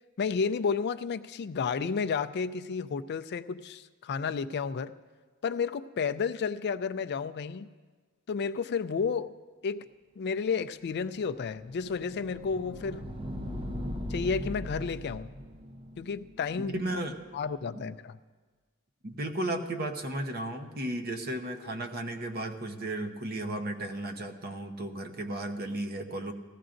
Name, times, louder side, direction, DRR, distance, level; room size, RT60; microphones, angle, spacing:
voice 1, 0.2-4.9 5.4-7.7 8.3-9.3 9.6-9.9 10.2-13.0 14.1-15.3 16.0-16.8 17.3-18.2, left 5 dB, 50° left, 10 dB, 0.4 m, -31 dB
sound 1, 10.9-17.8, left 1 dB, 25° right, 0.6 m, -40 dB
voice 2, 16.7-17.2 17.7-17.8 19.0-26.3, right 1 dB, 45° right, 5 dB, 0.9 m, -34 dB
18.5 x 15.0 x 2.6 m, 1.4 s
head